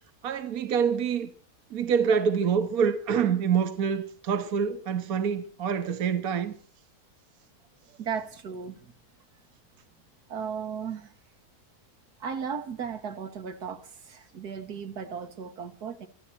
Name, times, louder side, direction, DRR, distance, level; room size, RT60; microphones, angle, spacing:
voice 1, 0.2-1.3 1.7-6.5, right 7 dB, 70° right, 1.5 m, -26 dB
voice 2, 8.0-8.9 10.3-11.1 12.2-16.1, right 7 dB, 85° right, 2.0 m, -36 dB
24.5 x 13.0 x 4.5 m
omnidirectional pair, 1.6 m